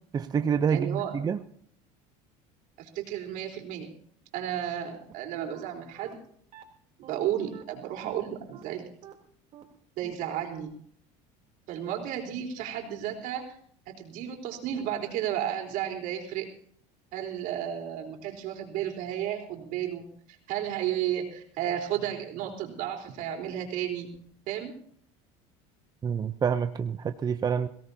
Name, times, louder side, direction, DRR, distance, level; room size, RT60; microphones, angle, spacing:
voice 1, 0.1-1.4 26.0-27.7, right 7 dB, 25° right, 9 dB, 0.6 m, -27 dB
voice 2, 0.7-1.1 2.8-3.9 4.3-6.2 7.0-8.9 10.0-10.7 11.7-13.5 13.9-16.5 17.1-20.0 20.5-24.1 24.5-24.7, right 10 dB, 65° right, 1 dB, 4.0 m, -33 dB
sound 1, 5.1-5.2 5.5-5.6 6.0-6.1 6.5-6.6 7.0-7.1 7.5-7.6 8.0-8.1 8.5-8.6 9.0-9.1 9.5-9.6 10.0-10.1 10.5-10.6, right 10 dB, 50° right, 3.5 m, -47 dB
22.5 x 17.5 x 2.8 m, 0.63 s
cardioid pair, 125°, 15 cm